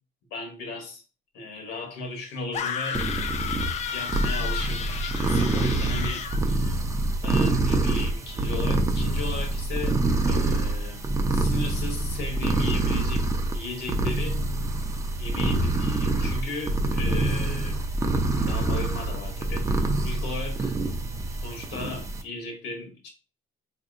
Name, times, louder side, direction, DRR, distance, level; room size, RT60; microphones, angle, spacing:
voice 1, 0.3-1.0 1.3-3.0 3.9-6.8 7.2-10.0 10.3-11.0 11.3-13.2 13.5-14.4 15.2-17.8 18.5-20.8 21.4-23.1, left 2 dB, 90° left, 3 dB, 1.1 m, -35 dB
sound 1, 2.5-6.4, left 7 dB, 45° left, 0.4 m, -32 dB
sound 2, 2.9-22.2, right 2 dB, 20° right, 0.6 m, -26 dB
4.1 x 2.8 x 2.5 m, 0.34 s
cardioid pair, 110°, 17 cm